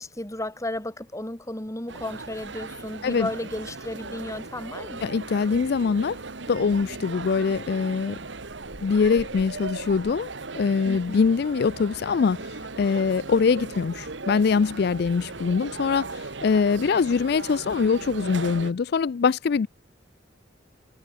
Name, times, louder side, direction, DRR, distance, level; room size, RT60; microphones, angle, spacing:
voice 1, 0.0-5.0 10.8-11.3, left 1 dB, 15° left, 2.1 m, -34 dB
sound 1, 1.9-18.7, right 3 dB, 65° right, 1.7 m, -37 dB
voice 2, 5.0-6.2 6.5-8.2 8.8-19.7, left 5 dB, 55° left, 0.4 m, -23 dB
head